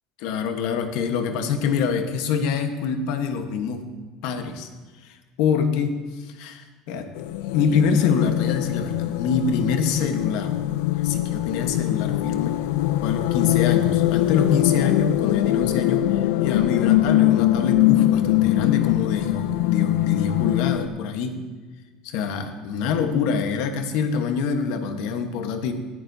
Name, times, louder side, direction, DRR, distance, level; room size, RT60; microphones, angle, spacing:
voice 1, 0.2-3.8 4.2-4.7 5.0-7.1 7.5-10.6 11.0-12.6 13.0-21.4 22.0-25.7, left 6 dB, 65° left, 6 dB, 1.2 m, -25 dB
sound 1, 7.2-20.9, left 15 dB, 90° left, 0.5 m, -22 dB
18.0 x 11.0 x 2.8 m, 1.3 s
cardioid pair, 170°, 0 cm